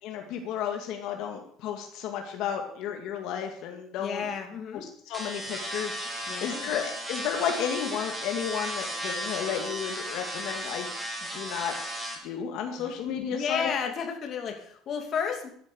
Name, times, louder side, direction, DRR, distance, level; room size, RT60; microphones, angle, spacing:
voice 1, 0.0-4.3 5.1-10.9 11.3-11.7 12.2-13.7, left 8 dB, 65° left, 3 dB, 2.1 m, -32 dB
voice 2, 4.0-4.8 6.3-6.7 12.7-13.0 13.3-15.5, left 6 dB, 40° left, 3 dB, 2.8 m, -32 dB
sound 1, 5.1-12.2, equal, 10° right, 3.6 m, -35 dB
14.0 x 10.5 x 7.0 m, 0.63 s
cardioid pair, 145°, 0 cm